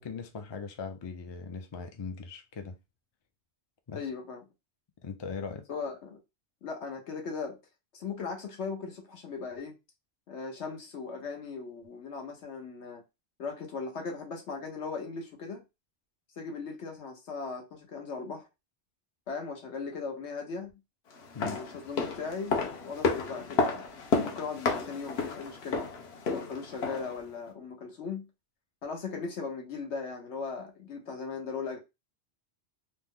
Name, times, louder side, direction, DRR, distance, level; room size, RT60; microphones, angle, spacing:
voice 1, 0.0-2.8 3.9-4.0 5.0-5.7 21.3-21.7, left 5 dB, 45° left, 0.3 m, -39 dB
voice 2, 3.9-4.4 5.7-6.2 6.6-7.6 7.9-9.8 10.3-13.0 13.4-15.6 16.4-18.5 19.3-20.7 21.4-23.8 24.1-25.8 26.3-28.3 28.8-31.8, left 5 dB, 85° left, 1.2 m, -38 dB
sound 1, 21.2-27.2 27.5-27.6, left 4 dB, 70° left, 0.9 m, -31 dB
3.0 x 2.1 x 3.5 m
omnidirectional pair, 1.1 m